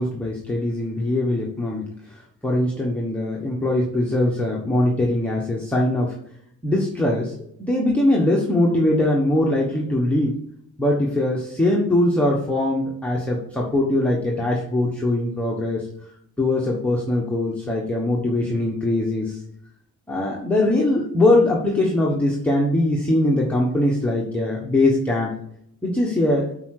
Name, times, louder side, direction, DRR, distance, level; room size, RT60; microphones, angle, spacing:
voice 1, 0.0-6.2 6.6-7.3 7.6-10.4 10.8-15.9 16.4-19.4 20.1-25.3 25.8-26.5, left 1 dB, 5° left, -3 dB, 1.1 m, -21 dB
8.3 x 4.8 x 6.4 m, 0.70 s
wide cardioid pair, 175°, 32 cm